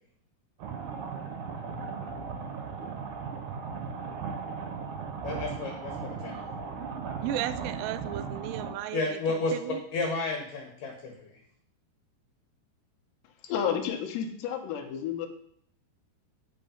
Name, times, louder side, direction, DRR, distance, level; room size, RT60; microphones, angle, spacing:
sound 1, 0.6-8.7, right 5 dB, 65° right, 2.0 m, -37 dB
voice 1, 5.2-6.4 8.9-9.5 9.9-11.3, left 3 dB, 65° left, 2.7 m, -32 dB
voice 2, 7.2-9.8, right 11 dB, 90° right, 2.8 m, -35 dB
voice 3, 13.4-15.3, left 8 dB, 90° left, 3.2 m, -31 dB
9.6 x 5.5 x 5.7 m
omnidirectional pair, 4.8 m